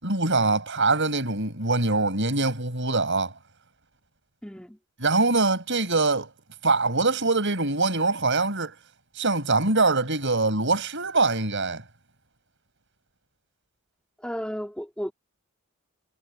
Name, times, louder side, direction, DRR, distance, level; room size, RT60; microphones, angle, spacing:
voice 1, 0.0-3.3 5.0-6.3 6.6-8.7 9.2-11.8, right 3 dB, 60° right, 7.5 m, -23 dB
voice 2, 4.4-4.8 14.2-15.1, equal, 5° left, 4.6 m, -33 dB
head